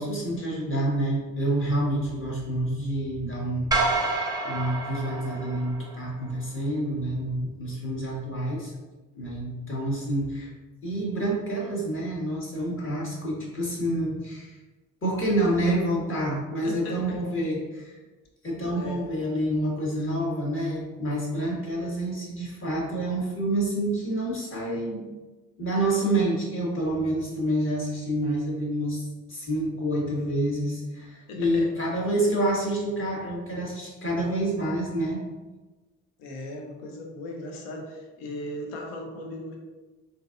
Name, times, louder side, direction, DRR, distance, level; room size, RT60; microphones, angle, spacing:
voice 1, 0.0-8.7 9.1-10.5 10.8-14.5 15.0-17.9 18.4-25.0 25.6-35.2, right 1 dB, 30° left, -4 dB, 1.4 m, -28 dB
sound 1, 3.7-6.1, right 3 dB, 10° right, 0.7 m, -28 dB
voice 2, 16.6-17.2 18.7-19.0 20.0-20.1 31.3-31.7 36.2-39.6, left 1 dB, 70° left, 1 dB, 0.7 m, -37 dB
3.8 x 2.7 x 2.5 m, 1.2 s
hypercardioid pair, 45°, 43 cm